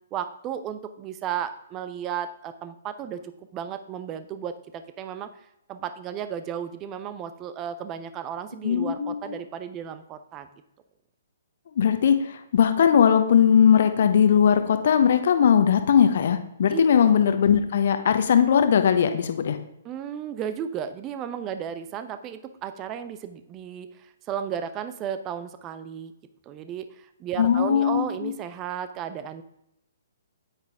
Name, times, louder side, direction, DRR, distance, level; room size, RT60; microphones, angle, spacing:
voice 1, 0.1-3.2 3.5-5.3 5.7-10.5 16.7-16.8 19.8-26.1 26.5-29.4, right 9 dB, 20° right, 10 dB, 0.8 m, -34 dB
voice 2, 8.6-9.3 11.8-19.6 27.4-28.3, left 8 dB, 50° left, 8 dB, 1.1 m, -19 dB
9.5 x 9.3 x 3.6 m, 0.82 s
figure-of-eight pair, 125°, 0 cm